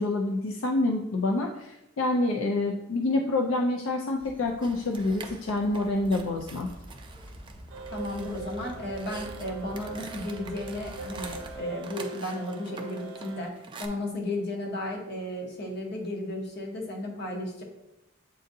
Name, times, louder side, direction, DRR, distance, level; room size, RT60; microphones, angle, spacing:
voice 1, 0.0-6.7, left 2 dB, 80° left, 2 dB, 0.4 m, -27 dB
sound 1, 4.2-11.6, equal, 25° left, 0.9 m, -47 dB
sound 2, 4.6-13.9, right 4 dB, 25° right, 0.3 m, -46 dB
sound 3, 7.7-13.5, right 4 dB, 70° right, 0.6 m, -42 dB
voice 2, 7.9-13.5 13.8-17.6, left 1 dB, 55° left, -1 dB, 0.9 m, -34 dB
7.5 x 2.6 x 2.6 m, 0.93 s
head